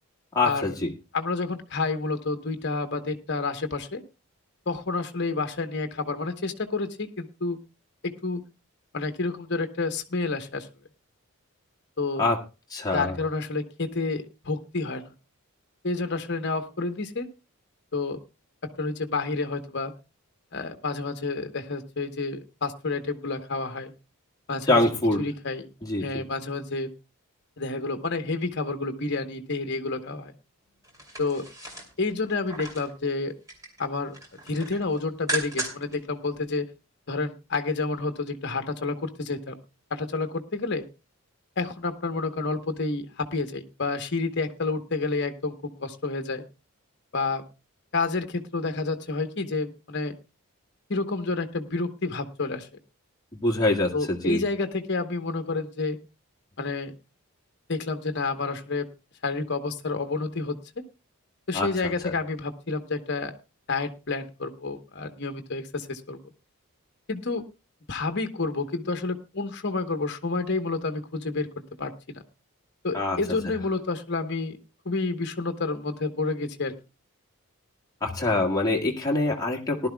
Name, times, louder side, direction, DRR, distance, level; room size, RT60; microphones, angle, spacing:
voice 1, 0.4-0.9 12.2-12.4 12.7-13.1 24.7-25.2 25.8-26.1 53.4-53.9 54.2-54.4 61.5-61.7 62.0-62.1 72.9-73.2 78.0-79.9, left 2 dB, 15° left, -1 dB, 1.7 m, -24 dB
voice 2, 1.1-4.0 4.7-7.6 8.0-8.4 8.9-10.7 12.0-12.2 12.9-15.1 15.8-17.3 17.9-18.2 18.6-19.9 20.5-23.9 24.5-24.8 25.2-25.7 26.0-26.9 27.6-30.3 31.2-31.4 32.0-33.3 33.8-36.7 37.1-39.6 39.9-40.8 41.6-46.4 47.1-47.4 47.9-50.2 50.9-52.7 53.9-56.0 56.6-56.9 57.7-58.9 59.2-60.8 61.5-63.3 63.7-66.2 67.1-67.4 67.9-71.5 71.8-72.2 72.8-74.6 74.8-76.7, left 3 dB, 50° left, 7 dB, 1.1 m, -29 dB
sound 1, 30.8-32.9 33.3-33.8 34.1-36.0 36.3-36.4, right 2 dB, 15° right, 2.7 m, -35 dB
19.0 x 11.5 x 2.3 m, 0.27 s
head